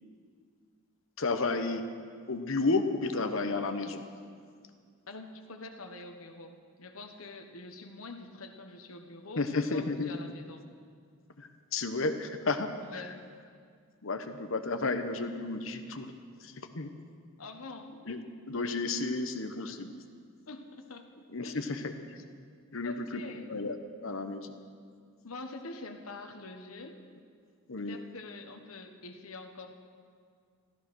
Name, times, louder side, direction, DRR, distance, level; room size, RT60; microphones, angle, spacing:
voice 1, 1.2-1.8 2.3-4.0 9.4-10.1 11.4-13.1 14.0-16.1 16.4-16.9 18.1-19.9 21.3-21.9 22.7-23.2 23.5-23.8 24.0-24.6 27.7-28.0, left 3 dB, 65° left, 8 dB, 1.0 m, -32 dB
voice 2, 5.1-10.7 12.8-13.2 17.4-18.0 20.5-21.0 21.4-21.6 22.8-23.5 25.2-27.0 27.8-29.7, left 3 dB, 85° left, 5 dB, 1.3 m, -45 dB
14.0 x 14.0 x 6.3 m, 2.1 s
head